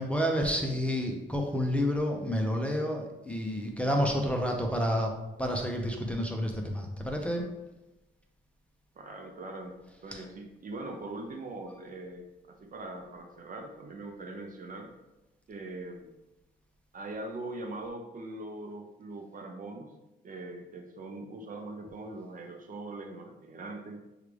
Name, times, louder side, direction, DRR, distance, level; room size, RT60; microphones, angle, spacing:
voice 1, 0.0-7.5 10.1-10.2, equal, 5° left, 2 dB, 0.6 m, -30 dB
voice 2, 9.0-9.7 10.0-14.9 15.5-16.1 16.9-19.9 20.2-24.1, right 2 dB, 45° right, 4 dB, 0.6 m, -41 dB
6.3 x 2.4 x 3.3 m, 1.0 s
cardioid pair, 90°, 20 cm